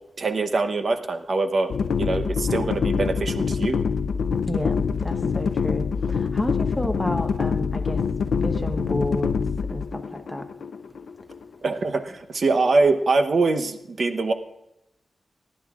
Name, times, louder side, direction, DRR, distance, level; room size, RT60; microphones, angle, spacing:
voice 1, 0.2-1.7 2.0-3.8 11.6-14.3, right 3 dB, 55° right, 7 dB, 0.8 m, -23 dB
sound 1, 1.7-11.8, left 5 dB, 85° left, 0.4 m, -25 dB
voice 2, 4.5-8.0 8.3-9.3 9.7-10.4, left 1 dB, 5° left, 4 dB, 1.1 m, -31 dB
30.0 x 11.0 x 2.4 m, 0.87 s
wide cardioid pair, 120°, 0 cm